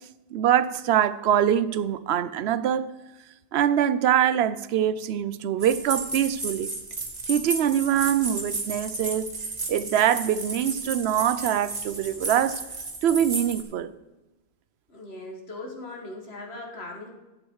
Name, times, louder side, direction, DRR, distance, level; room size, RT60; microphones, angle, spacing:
voice 1, 0.3-2.9 3.5-6.7 7.3-9.3 9.7-12.6 13.0-13.9, right 10 dB, 85° right, 15 dB, 0.8 m, -24 dB
sound 1, 5.6-13.6, right 3 dB, 40° right, 1.6 m, -33 dB
voice 2, 14.9-17.1, left 2 dB, 80° left, 1 dB, 2.1 m, -39 dB
11.5 x 8.1 x 4.7 m, 1.1 s
omnidirectional pair, 1.1 m